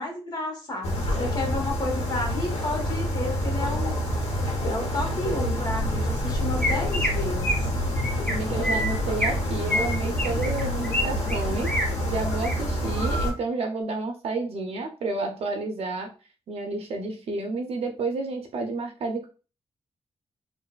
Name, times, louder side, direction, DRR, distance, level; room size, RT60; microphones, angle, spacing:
voice 1, 0.0-3.9 4.6-7.7, left 2 dB, 40° left, 0 dB, 1.2 m, -31 dB
sound 1, 0.8-13.3, equal, 70° left, 1.4 m, -27 dB
Chirp tweet, 6.6-7.1 7.4-7.6 8.0-8.3 8.6-9.4 9.7-11.0 11.3-11.8 12.3-12.5 13.0-13.3, left 1 dB, 10° left, 2.0 m, -27 dB
voice 2, 8.3-16.1 16.5-19.3, right 3 dB, 65° right, 3 dB, 0.6 m, -30 dB
4.6 x 2.6 x 2.3 m, 0.35 s
wide cardioid pair, 145°, 11 cm